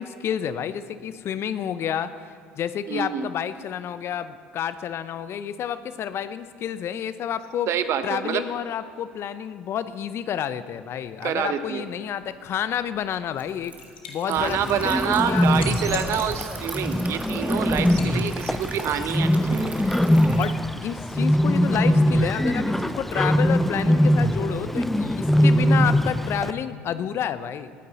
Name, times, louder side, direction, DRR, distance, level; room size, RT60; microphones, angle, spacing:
voice 1, 0.0-2.1 2.6-7.7 8.0-13.7 14.1-15.5 18.0-18.3 20.4-27.7, left 9 dB, 50° left, 14 dB, 0.6 m, -30 dB
voice 2, 2.9-3.3 7.7-8.4 11.2-11.9 14.3-19.7, right 9 dB, 55° right, 11 dB, 0.9 m, -27 dB
Liquid, 12.3-20.6, right 3 dB, 25° right, 1.4 m, -40 dB
Liquid 2, 13.3-14.1 14.6-16.7 17.1-17.3 17.8-18.2, left 5 dB, 80° left, 1.4 m, -37 dB
Bird, 14.4-26.5, equal, 5° left, 0.5 m, -22 dB
20.0 x 9.4 x 4.1 m, 2.3 s
hypercardioid pair, 65°, 6 cm